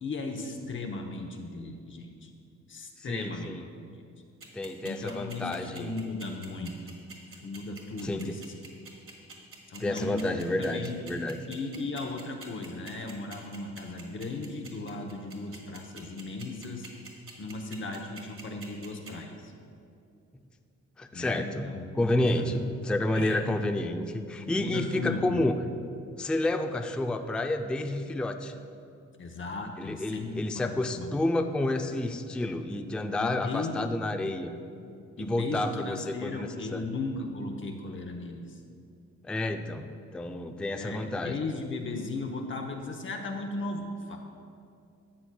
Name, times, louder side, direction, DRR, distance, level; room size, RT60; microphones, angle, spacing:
voice 1, 0.0-2.3 2.7-3.5 4.8-7.0 7.4-8.5 9.7-10.3 10.6-11.0 11.5-16.9 17.4-19.5 21.1-22.7 23.1-23.4 24.3-25.4 29.2-31.2 33.2-33.8 35.2-38.6 40.7-44.2, left 3 dB, 40° left, 3 dB, 0.8 m, -36 dB
voice 2, 3.0-3.6 4.5-5.9 8.0-8.3 9.8-11.4 21.0-25.6 26.2-28.5 29.8-34.6 35.2-36.9 39.2-41.4, left 1 dB, 5° left, 6 dB, 0.3 m, -30 dB
sound 1, 4.4-19.1, right 4 dB, 45° right, 1.7 m, -46 dB
12.5 x 7.6 x 2.3 m, 2.5 s
cardioid pair, 90°, 30 cm